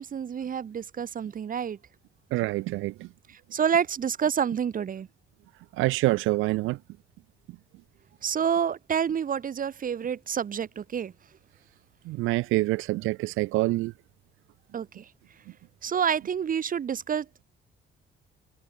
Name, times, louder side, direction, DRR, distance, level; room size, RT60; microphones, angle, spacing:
voice 1, 0.0-1.8 3.3-5.1 8.2-11.1 14.7-15.1 15.8-17.3, right 8 dB, 45° right, 0.9 m, -28 dB
voice 2, 2.3-2.9 5.8-6.8 12.1-13.9, right 19 dB, 90° right, 0.4 m, -26 dB
cardioid pair, 90°, 20 cm